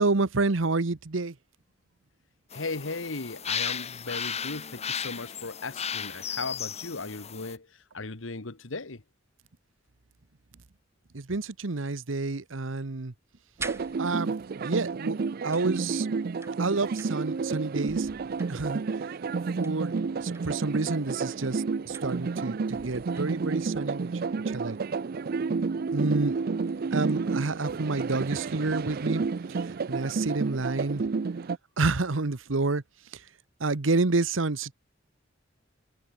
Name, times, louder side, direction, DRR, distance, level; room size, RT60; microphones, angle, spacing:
voice 1, 0.0-1.3 11.1-13.1 14.0-15.2 15.4-16.1 16.6-18.1 18.5-18.8 19.6-19.9 20.2-24.1 24.5-24.8 25.9-26.4 26.9-29.2 29.9-31.0 31.8-32.8 33.6-34.7, right 3 dB, 80° right, 1.1 m, -28 dB
voice 2, 2.5-7.7 7.9-9.0, left 3 dB, 85° left, 1.5 m, -37 dB
sound 1, 2.5-7.6, left 7 dB, 35° left, 1.5 m, -35 dB
sound 2, 13.2-14.6 15.5-17.4 17.7-19.0 19.6-20.6 21.9-22.4 22.7-23.8 25.3-25.4 25.9-26.1 26.5-27.3, right 3 dB, 15° right, 2.9 m, -46 dB
sound 3, 13.6-31.6, right 4 dB, 50° right, 0.4 m, -31 dB
head